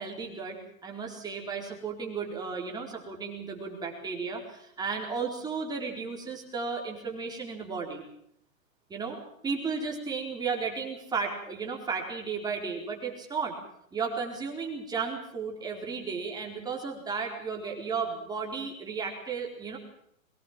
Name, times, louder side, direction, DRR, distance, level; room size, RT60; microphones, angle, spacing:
voice 1, 0.0-8.0 8.9-9.2 9.4-13.5 13.9-19.8, right 5 dB, 10° right, 0 dB, 4.3 m, -34 dB
23.0 x 19.0 x 7.5 m, 0.71 s
hypercardioid pair, 155°, 42 cm